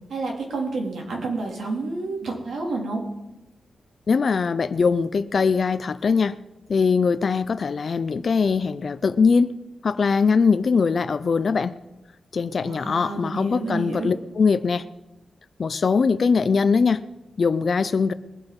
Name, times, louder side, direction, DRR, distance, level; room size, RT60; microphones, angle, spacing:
voice 1, 0.1-3.0 12.6-14.2, right 3 dB, 75° right, -1 dB, 3.8 m, -29 dB
voice 2, 4.1-6.4 6.7-9.5 9.8-11.8 12.3-14.8 15.6-17.0 17.4-18.1, left 5 dB, 45° left, 14 dB, 0.6 m, -21 dB
22.0 x 7.9 x 5.5 m, 1.0 s
wide cardioid pair, 155°, 0 cm